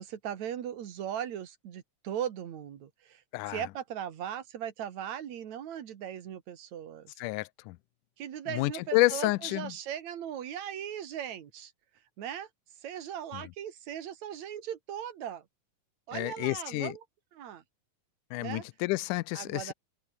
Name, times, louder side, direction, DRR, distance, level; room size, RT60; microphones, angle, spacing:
voice 1, 0.0-3.2 3.5-7.1 8.2-11.7 12.2-12.5 12.8-15.5 16.1-17.0 17.3-17.6 18.4-18.6 19.3-19.7, right 9 dB, 65° right, 3.0 m, -38 dB
voice 2, 7.2-7.8 8.5-9.7 16.1-16.9 18.3-19.7, left 21 dB, 85° left, 2.1 m, -29 dB
open air
omnidirectional pair, 3.6 m